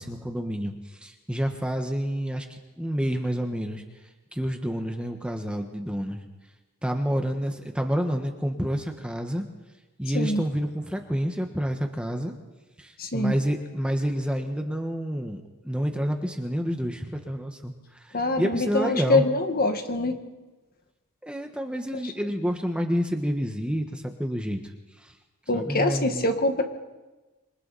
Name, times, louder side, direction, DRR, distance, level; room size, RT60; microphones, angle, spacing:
voice 1, 0.0-3.8 4.3-6.2 6.8-9.4 10.0-12.3 12.8-19.3 21.2-24.7 25.0-25.1 25.5-26.3, equal, 5° right, 3 dB, 1.5 m, -29 dB
voice 2, 13.0-13.3 18.1-20.2 25.5-26.6, left 2 dB, 45° left, 6 dB, 1.9 m, -24 dB
26.5 x 24.5 x 4.3 m, 1.2 s
head